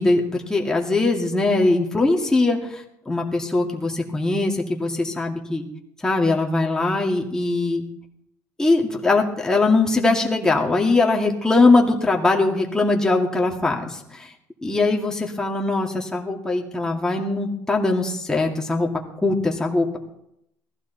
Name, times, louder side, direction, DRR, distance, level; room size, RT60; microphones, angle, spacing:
voice 1, 0.0-2.6 3.1-5.7 6.0-7.8 8.6-14.3 14.6-18.9 19.2-20.0, left 3 dB, 10° left, -1 dB, 2.3 m, -21 dB
19.5 x 15.0 x 4.1 m, 0.80 s
cardioid pair, 140°, 7 cm